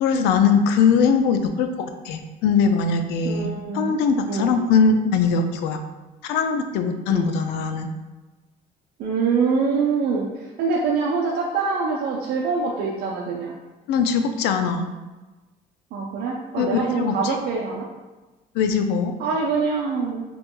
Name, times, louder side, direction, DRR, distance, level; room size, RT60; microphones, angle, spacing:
voice 1, 0.0-5.8 6.2-7.9 13.9-14.9 16.6-17.4 18.5-19.1, left 5 dB, 90° left, 7 dB, 0.4 m, -21 dB
voice 2, 3.2-3.9 4.3-4.5 7.1-7.3 9.0-10.3 10.6-13.5 15.9-17.9 19.2-20.2, right 5 dB, 70° right, -3 dB, 0.5 m, -24 dB
3.0 x 2.9 x 3.6 m, 1.2 s
cardioid pair, 110°, 17 cm